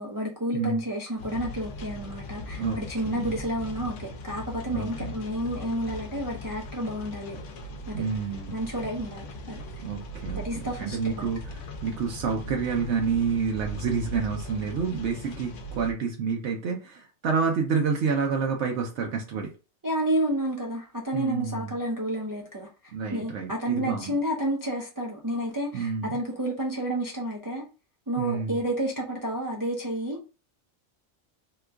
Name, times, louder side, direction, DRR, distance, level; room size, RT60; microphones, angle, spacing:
voice 1, 0.0-7.4 7.9-8.0 8.5-9.6 10.3-11.3 19.8-27.6 28.1-30.3, right 1 dB, 30° right, -2 dB, 0.4 m, -30 dB
sound 1, 1.2-15.9, left 1 dB, 90° left, 1.0 m, -39 dB
voice 2, 4.7-5.2 7.9-8.6 9.8-19.5 21.1-21.7 22.9-24.1 25.7-26.2 28.2-28.6, right 5 dB, 70° right, 1 dB, 0.9 m, -29 dB
2.9 x 2.3 x 3.4 m, 0.32 s
omnidirectional pair, 1.2 m